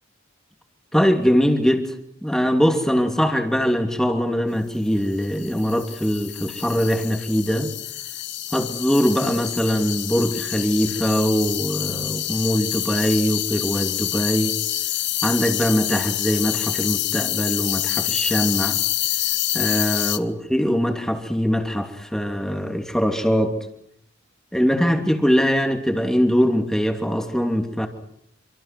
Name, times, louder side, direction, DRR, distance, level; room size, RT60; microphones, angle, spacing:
voice 1, 0.9-1.9 2.2-7.7 8.5-14.6 15.2-18.8 19.5-23.6 24.5-27.9, equal, 5° left, 4 dB, 2.8 m, -22 dB
sound 1, 5.2-20.2, left 14 dB, 60° left, 1.2 m, -27 dB
27.0 x 25.5 x 6.1 m, 0.71 s
head